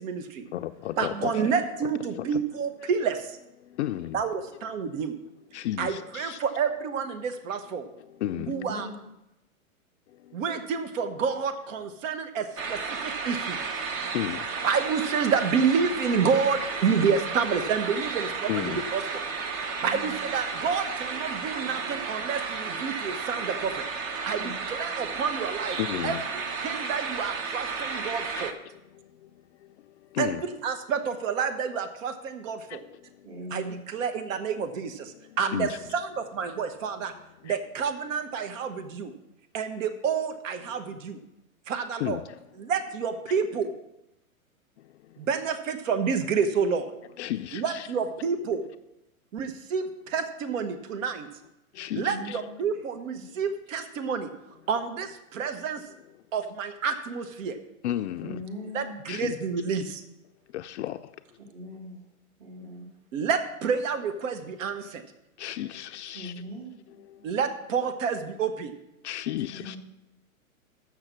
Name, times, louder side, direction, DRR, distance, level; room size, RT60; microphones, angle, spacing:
voice 1, 0.0-0.4 1.0-3.4 4.1-5.2 5.8-7.9 8.5-8.9 10.3-13.6 14.6-19.2 19.8-23.8 24.3-25.8 26.0-28.5 30.2-32.8 33.5-37.1 37.4-39.1 39.5-41.2 41.7-42.2 42.6-43.7 45.2-46.9 47.5-48.6 49.3-51.3 52.0-54.3 54.7-55.8 56.3-57.6 58.7-60.0 63.1-65.0 67.2-68.7, right 6 dB, 60° right, 9 dB, 1.2 m, -29 dB
voice 2, 0.5-1.4 1.8-1.9 2.2-2.4 2.8-2.9 3.6-4.2 5.5-6.4 8.0-8.8 10.1-10.4 14.1-14.6 18.5-18.8 19.5-19.8 25.8-26.2 28.4-28.5 28.9-29.3 29.6-30.4 32.7-33.3 35.2-35.8 37.4-37.6 42.0-42.4 44.8-45.3 47.2-47.9 51.7-52.4 53.3-53.4 57.8-58.4 59.1-59.3 60.5-61.1 65.4-66.3 67.0-67.3 69.0-69.8, left 13 dB, 55° left, 8 dB, 0.5 m, -34 dB
voice 3, 1.1-1.4 3.8-3.9 8.3-8.9 19.9-20.1 24.3-24.5 33.2-33.8 34.3-34.4 51.9-52.6 53.1-53.2 58.2-59.0 61.5-62.0 62.4-62.9 66.1-66.8 67.2-67.3 69.5-69.8, equal, 45° right, -1 dB, 2.4 m, -40 dB
sound 1, 12.6-28.5, right 5 dB, 30° right, 0.7 m, -33 dB
7.1 x 6.6 x 7.4 m, 0.90 s
hypercardioid pair, 135°, 43 cm